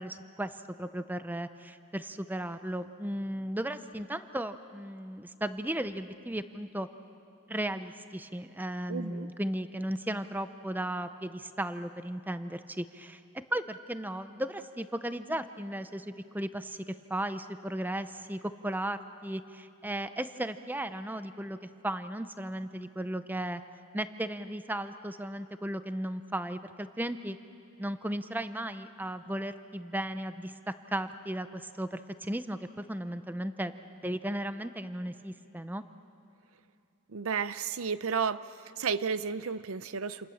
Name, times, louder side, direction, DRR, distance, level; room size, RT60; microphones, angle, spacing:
voice 1, 0.0-6.9 7.5-21.6 21.8-23.6 23.9-27.4 27.8-33.7 34.0-35.8, right 1 dB, 10° right, 11 dB, 0.6 m, -35 dB
voice 2, 8.9-9.3 37.1-38.4 38.8-40.3, right 6 dB, 75° right, 14 dB, 0.7 m, -32 dB
28.0 x 27.5 x 7.2 m, 2.6 s
head